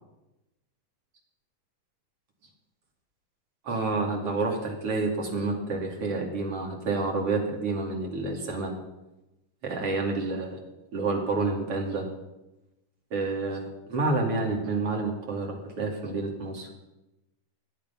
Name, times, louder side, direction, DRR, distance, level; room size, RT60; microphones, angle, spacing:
voice 1, 3.6-8.8 9.6-10.6 10.9-12.1 13.1-16.7, right 3 dB, 45° right, 1 dB, 3.2 m, -29 dB
19.0 x 11.0 x 5.7 m, 0.98 s
omnidirectional pair, 4.0 m